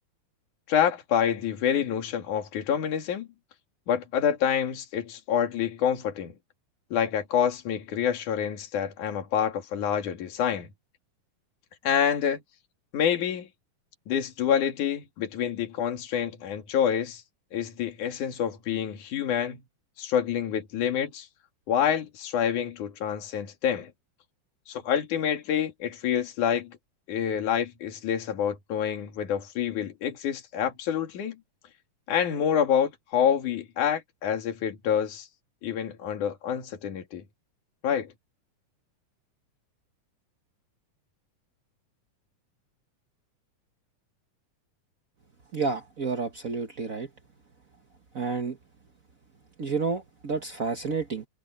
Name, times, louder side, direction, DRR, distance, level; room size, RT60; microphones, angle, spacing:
voice 1, 0.7-3.3 3.9-6.3 6.9-10.7 11.8-12.4 12.9-13.5 14.1-17.2 17.5-19.6 20.0-21.3 21.7-23.9 24.7-26.8 27.1-31.4 32.1-35.3 35.6-37.2 37.8-38.1, left 8 dB, 70° left, 3.7 m, -27 dB
voice 2, 45.5-47.1 48.1-48.6 49.6-51.3, right 4 dB, 90° right, 0.7 m, -30 dB
omnidirectional pair, 3.7 m